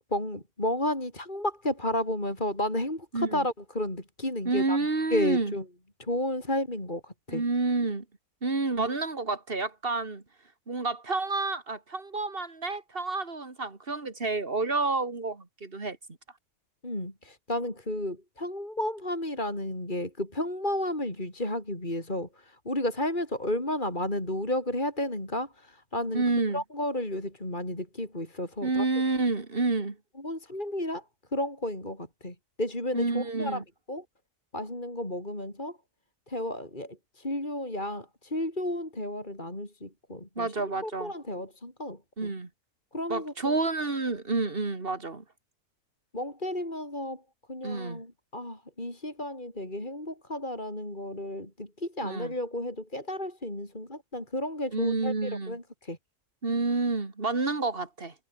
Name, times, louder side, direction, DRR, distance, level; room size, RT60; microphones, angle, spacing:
voice 1, 0.1-4.8 5.1-5.6 6.0-7.4 16.8-26.2 26.5-28.9 30.2-31.0 31.3-33.6 33.9-34.0 34.5-35.8 36.3-40.5 40.8-42.3 42.9-43.6 46.1-47.2 47.5-56.0, left 1 dB, 30° left, 6.1 m, -32 dB
voice 2, 3.1-3.5 4.4-5.5 7.3-8.0 8.4-10.2 10.7-16.0 26.1-26.6 28.6-30.0 32.9-33.6 40.4-41.1 42.2-42.5 43.1-45.2 47.6-48.0 52.0-52.3 54.7-55.6 56.4-58.1, right 3 dB, 35° right, 2.9 m, -29 dB
omnidirectional pair, 1.6 m